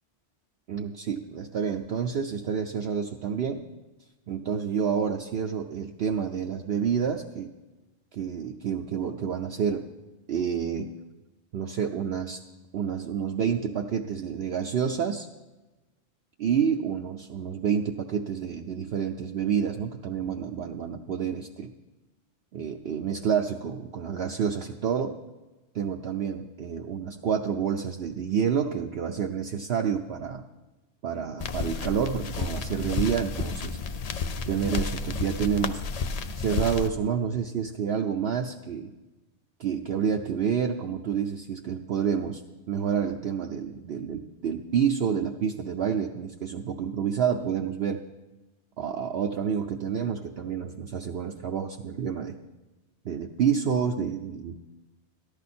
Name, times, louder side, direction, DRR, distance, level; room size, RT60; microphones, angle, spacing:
voice 1, 0.7-3.6 4.3-7.5 8.1-9.9 10.3-10.9 11.5-12.4 12.7-15.3 16.4-21.7 22.5-25.2 25.7-30.4 31.0-33.8 34.5-35.8 36.4-38.9 39.6-42.4 42.7-48.0 48.8-52.4 53.0-54.6, right 7 dB, 65° right, 2 dB, 0.9 m, -28 dB
sound 1, 31.4-36.9, left 4 dB, 45° left, 0.5 m, -31 dB
13.5 x 11.5 x 4.3 m, 1.1 s
omnidirectional pair, 1.2 m